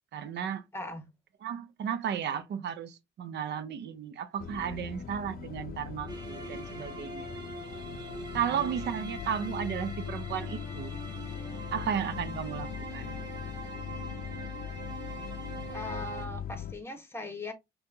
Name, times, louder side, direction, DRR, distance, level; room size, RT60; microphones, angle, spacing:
voice 1, 0.1-0.6 1.4-7.3 8.3-11.0 11.7-13.1, right 8 dB, 60° right, 0.6 m, -34 dB
voice 2, 0.7-1.1 8.3-8.6 12.2-12.4 15.7-17.5, left 2 dB, 10° left, 1.1 m, -40 dB
sound 1, 4.4-16.7, left 8 dB, 50° left, 0.5 m, -40 dB
sound 2, 6.1-16.2, right 2 dB, 20° right, 1.6 m, -43 dB
5.2 x 2.4 x 2.7 m
cardioid pair, 90°, 20 cm